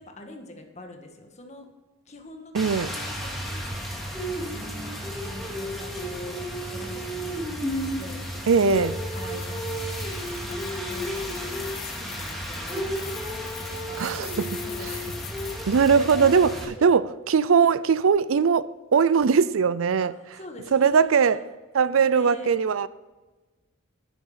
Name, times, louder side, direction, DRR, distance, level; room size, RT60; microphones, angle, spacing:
voice 1, 0.0-1.7 2.0-3.7 4.3-7.4 7.8-8.8 9.0-14.0 14.6-15.0 15.9-17.0 20.0-21.4 21.8-22.6, left 1 dB, 35° left, 1.7 m, -44 dB
Rain, 2.5-16.6, equal, ahead, 2.2 m, -32 dB
voice 2, 2.5-2.9 8.5-8.9 14.0-14.6 15.7-16.5 16.8-20.1 20.7-21.4 21.7-22.9, right 6 dB, 80° right, 0.5 m, -20 dB
sound 1, 7.7-15.9, left 11 dB, 90° left, 1.4 m, -44 dB
11.0 x 9.4 x 5.0 m
head